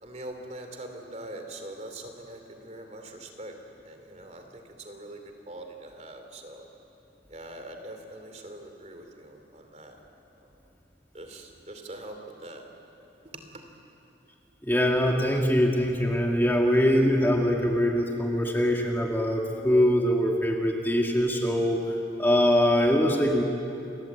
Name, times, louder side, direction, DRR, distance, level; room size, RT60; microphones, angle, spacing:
voice 1, 0.0-3.6 3.8-5.2 5.5-6.7 7.3-10.0 11.1-12.6 13.2-13.6, right 1 dB, 35° right, 5 dB, 3.0 m, -43 dB
voice 2, 14.6-21.8 22.2-23.4, equal, 10° left, 0 dB, 1.9 m, -23 dB
29.0 x 22.5 x 8.4 m, 2.8 s
head